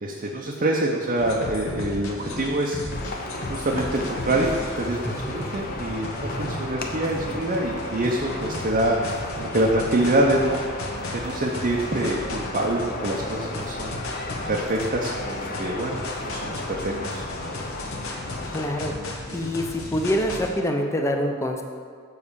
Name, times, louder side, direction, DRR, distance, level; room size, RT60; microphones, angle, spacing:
voice 1, 0.0-3.0 3.5-6.1 6.4-10.6 11.1-14.0 14.5-16.0 16.2-17.2 19.4-19.5, right 1 dB, 40° right, -1 dB, 0.6 m, -25 dB
sound 1, 1.2-20.5, left 2 dB, 70° left, 1.0 m, -35 dB
sound 2, 2.9-19.0, left 2 dB, 45° left, 0.8 m, -35 dB
sound 3, 4.6-10.6, equal, 5° right, 1.0 m, -38 dB
voice 2, 18.4-18.9 19.3-21.6, equal, 15° left, 3 dB, 0.6 m, -25 dB
7.1 x 4.2 x 6.8 m, 2.1 s
head